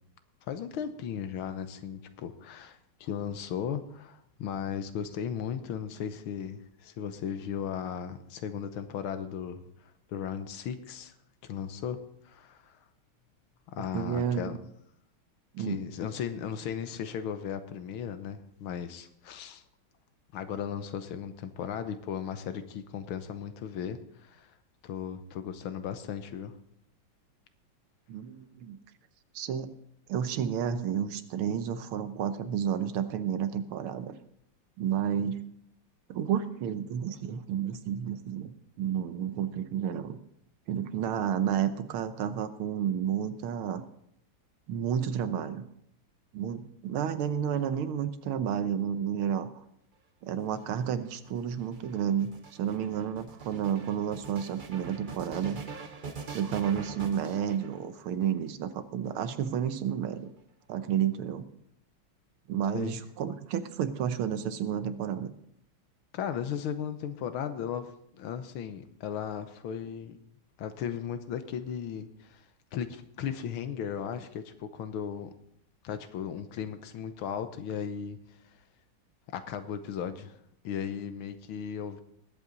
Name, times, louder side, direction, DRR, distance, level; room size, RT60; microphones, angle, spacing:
voice 1, 0.5-9.7 10.1-11.1 11.4-12.8 13.7-14.6 15.6-19.6 20.3-24.5 24.8-26.6 62.7-63.0 66.1-70.2 70.6-72.5 72.7-75.3 75.8-78.2 79.3-82.0, left 8 dB, 80° left, 10 dB, 1.7 m, -36 dB
voice 2, 13.9-14.6 15.5-15.8 28.1-28.8 29.4-29.7 30.1-34.2 34.8-35.4 36.1-40.2 40.7-43.8 44.7-45.7 46.3-49.5 50.2-55.6 56.3-60.3 60.7-61.5 62.5-65.3, right 9 dB, 85° right, 11 dB, 1.7 m, -31 dB
sound 1, 50.3-58.2 59.0-59.9, right 5 dB, 45° right, 0.6 m, -44 dB
20.0 x 8.3 x 3.9 m, 0.73 s
omnidirectional pair, 2.3 m